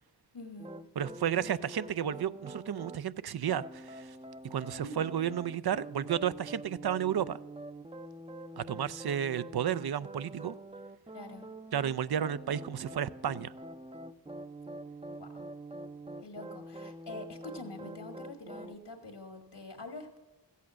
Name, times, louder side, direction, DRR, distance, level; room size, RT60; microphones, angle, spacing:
voice 1, 0.3-0.7 4.8-5.1 11.1-11.5 15.2-15.4 16.2-20.2, left 2 dB, 85° left, 7 dB, 1.8 m, -45 dB
sound 1, 0.6-3.0 3.5-18.8, right 1 dB, 15° right, 0.5 m, -45 dB
voice 2, 1.0-4.1 4.5-7.4 8.6-10.5 11.7-13.5, right 9 dB, 65° right, 17 dB, 0.5 m, -32 dB
14.5 x 8.3 x 6.2 m, 1.2 s
wide cardioid pair, 65°, 40 cm